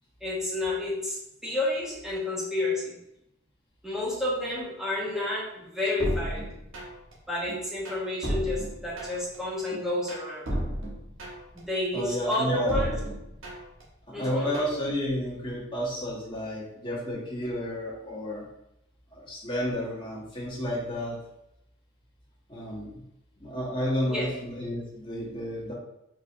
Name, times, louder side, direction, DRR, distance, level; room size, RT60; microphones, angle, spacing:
voice 1, 0.2-3.0 3.8-6.5 7.3-10.5 11.5-13.0 14.1-14.5 24.1-24.3, left 2 dB, ahead, -6 dB, 1.2 m, -30 dB
Tribal-Bass, 6.0-7.1 7.5-9.4 9.7-11.6 11.9-13.8 14.2-14.8, equal, 70° right, 1.2 m, -34 dB
voice 2, 11.9-13.0 14.2-18.4 19.1-21.1 22.5-23.0 23.4-25.7, equal, 25° left, -6 dB, 1.4 m, -31 dB
4.4 x 3.9 x 2.7 m, 0.84 s
head